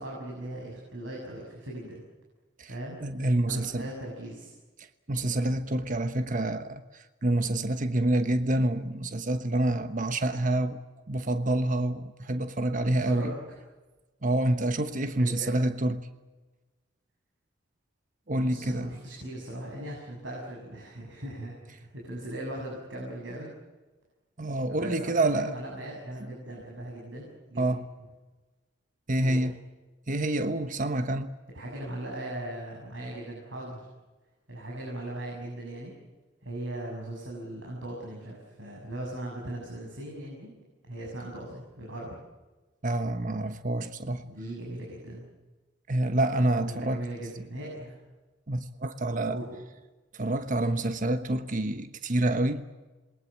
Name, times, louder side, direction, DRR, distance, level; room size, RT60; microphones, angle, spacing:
voice 1, 0.0-2.0 2.7-3.0 3.5-4.5 12.7-13.6 15.2-15.6 18.3-23.5 24.7-27.7 29.2-29.5 31.5-33.9 34.5-35.9 36.4-40.5 40.8-42.2 44.2-45.3 46.6-48.0 49.3-49.6, right 1 dB, 85° right, 7.0 m, -39 dB
voice 2, 3.0-3.9 5.1-10.8 11.1-13.3 14.2-16.1 18.3-18.9 24.4-25.5 27.6-27.8 29.1-29.6 30.1-31.3 42.8-44.2 45.9-47.0 48.5-49.4 50.1-52.6, right 1 dB, 45° right, 1.2 m, -27 dB
27.5 x 22.0 x 7.5 m
head